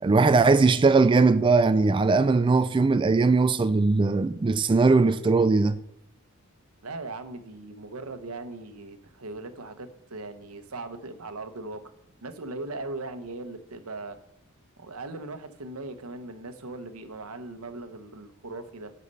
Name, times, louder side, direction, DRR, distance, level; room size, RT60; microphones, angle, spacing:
voice 1, 0.0-5.8, right 3 dB, 25° right, 0.3 m, -20 dB
voice 2, 6.8-11.8 12.2-14.2 14.8-18.9, right 2 dB, 90° right, 1.0 m, -39 dB
8.4 x 6.7 x 5.4 m
head